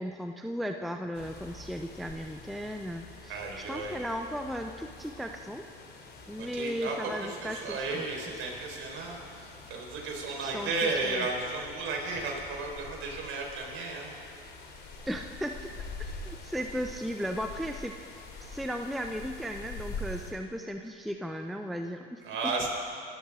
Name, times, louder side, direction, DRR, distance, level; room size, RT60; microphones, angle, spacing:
voice 1, 0.0-5.7 6.3-8.1 10.3-11.1 15.1-18.0 18.4-22.5, equal, ahead, 5 dB, 0.6 m, -36 dB
sound 1, 1.1-20.3, left 2 dB, 35° left, 2.9 m, -46 dB
voice 2, 3.3-4.0 6.4-14.1 22.2-22.7, right 3 dB, 45° right, 0 dB, 4.6 m, -34 dB
25.0 x 13.5 x 3.7 m, 2.5 s
hypercardioid pair, 80°, 29 cm